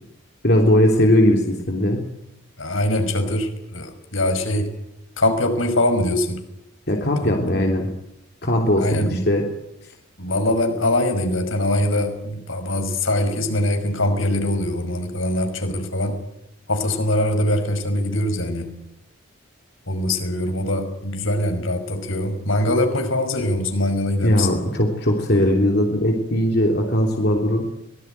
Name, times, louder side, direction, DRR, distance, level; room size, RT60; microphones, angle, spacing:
voice 1, 0.4-2.0 6.9-7.9 8.4-9.4 24.2-27.7, left 1 dB, 50° left, 1 dB, 3.3 m, -19 dB
voice 2, 2.6-4.7 5.2-6.4 7.2-7.3 8.8-9.2 10.2-16.2 16.7-18.8 19.9-24.6, left 1 dB, 80° left, 7 dB, 5.8 m, -22 dB
24.5 x 20.5 x 9.4 m, 0.83 s
head